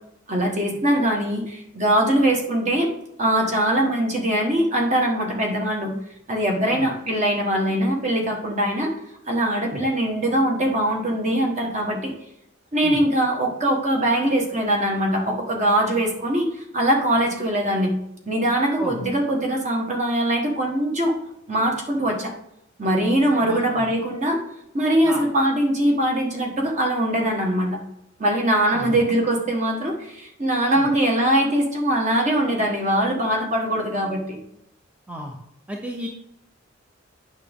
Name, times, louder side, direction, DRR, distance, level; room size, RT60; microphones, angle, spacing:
voice 1, 0.3-2.9 3.2-5.9 6.3-8.9 9.3-12.1 12.7-18.0 18.3-21.1 21.5-22.3 22.8-24.4 24.7-27.8 28.2-34.4, right 1 dB, 35° right, 1 dB, 1.4 m, -22 dB
voice 2, 23.4-23.9 25.0-25.2 28.7-29.0 30.8-30.9 35.1-35.4 35.7-36.1, equal, 5° right, 1 dB, 0.6 m, -33 dB
8.9 x 6.0 x 3.6 m, 0.78 s
head